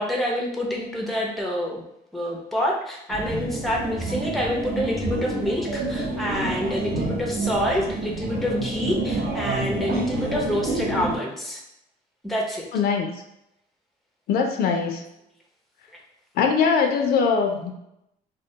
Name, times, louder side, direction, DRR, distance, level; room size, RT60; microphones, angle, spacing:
voice 1, 0.0-1.8 2.1-11.6 12.2-12.7, left 1 dB, ahead, -1 dB, 0.5 m, -27 dB
sound 1, 3.1-11.2, right 2 dB, 65° right, 0.8 m, -28 dB
voice 2, 12.7-13.1 14.3-15.0 16.4-17.7, left 6 dB, 65° left, 4 dB, 0.4 m, -21 dB
2.3 x 2.1 x 2.8 m, 0.80 s
cardioid pair, 110°, 17 cm